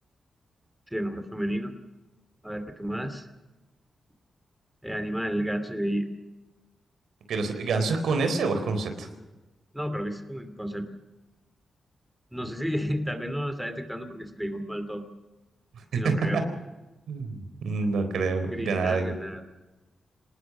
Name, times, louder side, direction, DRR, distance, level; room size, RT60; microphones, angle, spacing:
voice 1, 0.9-1.7 2.4-3.3 4.8-6.1 9.7-10.9 12.3-15.1 15.9-16.5 18.5-19.4, equal, 5° right, 8 dB, 2.7 m, -31 dB
voice 2, 7.3-9.1 15.7-16.4 17.1-19.1, right 4 dB, 85° right, 7 dB, 3.9 m, -27 dB
25.0 x 19.5 x 6.2 m, 1.1 s
cardioid pair, 95°, 0 cm